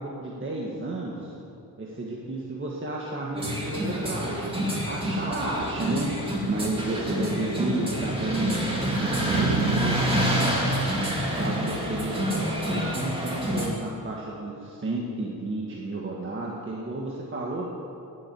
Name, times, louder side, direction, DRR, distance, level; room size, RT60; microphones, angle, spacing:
voice 1, 0.0-1.4 1.8-4.5 4.9-6.2 6.5-8.7 9.0-10.4 11.4-17.7, right 2 dB, 35° right, -2 dB, 1.6 m, -32 dB
sound 1, 3.4-13.7, right 1 dB, 15° right, 2.8 m, -27 dB
13.0 x 10.5 x 9.1 m, 2.7 s
wide cardioid pair, 165°, 35 cm